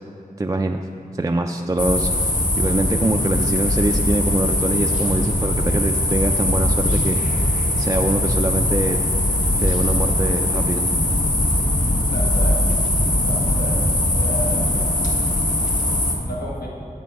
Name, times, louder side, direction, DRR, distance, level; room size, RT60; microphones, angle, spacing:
voice 1, 0.4-0.8 1.1-7.2 7.8-9.0 9.6-10.9, right 2 dB, 20° right, 3 dB, 0.3 m, -23 dB
sound 1, 1.8-16.1, left 1 dB, 60° left, 1.2 m, -20 dB
voice 2, 12.0-12.6 13.0-13.8 14.1-14.7 16.2-16.7, equal, 85° left, -4 dB, 1.5 m, -32 dB
8.3 x 7.2 x 4.7 m, 2.6 s
wide cardioid pair, 60°, 15 cm